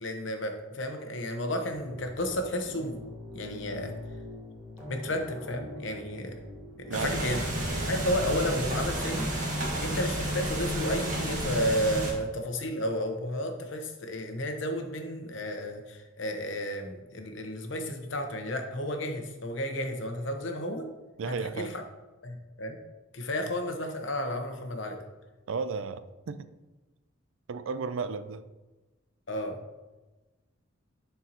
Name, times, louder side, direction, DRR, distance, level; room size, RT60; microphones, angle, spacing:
voice 1, 0.0-2.9 3.3-3.9 4.9-6.3 6.9-7.4 7.8-9.3 9.8-20.8 21.4-21.8 22.2-22.8 23.1-25.0 29.3-29.6, equal, 65° left, 4 dB, 1.0 m, -32 dB
sound 1, 1.7-11.7, left 1 dB, 15° right, 1.5 m, -43 dB
sound 2, 6.9-12.1, right 1 dB, 40° right, 1.5 m, -31 dB
voice 2, 6.9-7.4 21.2-21.8 25.5-26.5 27.5-28.5, right 5 dB, 75° right, 13 dB, 0.4 m, -34 dB
10.5 x 4.5 x 2.9 m, 1.1 s
head